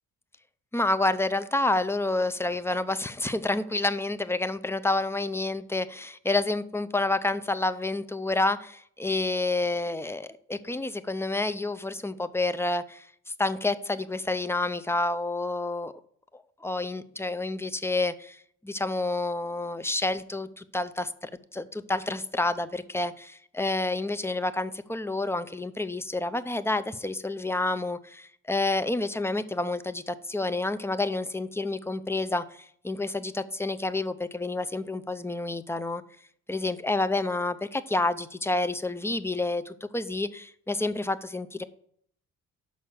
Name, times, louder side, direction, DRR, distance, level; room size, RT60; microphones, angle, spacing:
voice 1, 0.7-13.1 13.4-15.9 16.3-18.4 18.6-36.0 36.5-41.6, left 2 dB, 10° left, 0.5 m, -29 dB
6.3 x 5.5 x 6.8 m
cardioid pair, 90°, 30 cm